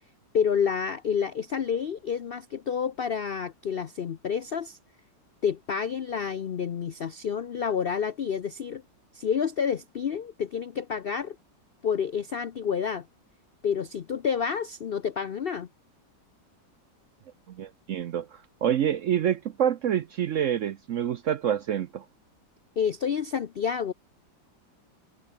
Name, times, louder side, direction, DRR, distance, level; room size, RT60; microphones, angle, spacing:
voice 1, 0.3-4.8 5.4-8.8 9.1-11.4 11.8-13.1 13.6-15.7 22.8-23.9, left 7 dB, 85° left, 0.5 m, -29 dB
voice 2, 17.5-22.1, right 9 dB, 65° right, 0.8 m, -27 dB
omnidirectional pair, 1.9 m